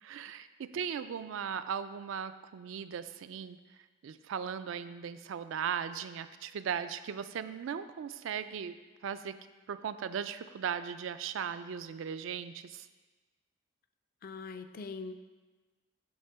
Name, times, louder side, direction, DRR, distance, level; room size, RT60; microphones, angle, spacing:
voice 1, 0.0-3.6 4.0-8.8 9.0-9.4 9.7-12.9, right 7 dB, 70° right, 12 dB, 0.3 m, -37 dB
voice 2, 14.2-15.2, left 4 dB, 45° left, 9 dB, 0.3 m, -42 dB
8.6 x 2.9 x 5.6 m, 1.3 s
head